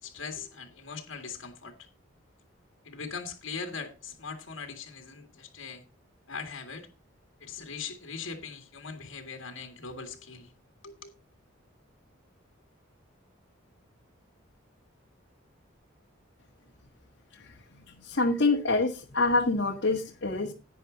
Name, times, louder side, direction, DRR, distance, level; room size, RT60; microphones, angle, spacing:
voice 1, 0.0-1.9 2.8-5.8 6.3-6.9 7.4-10.5 10.8-11.1, left 5 dB, 75° left, 2.0 m, -40 dB
voice 2, 17.9-20.5, left 3 dB, 60° left, 1.5 m, -26 dB
11.0 x 9.5 x 3.9 m
head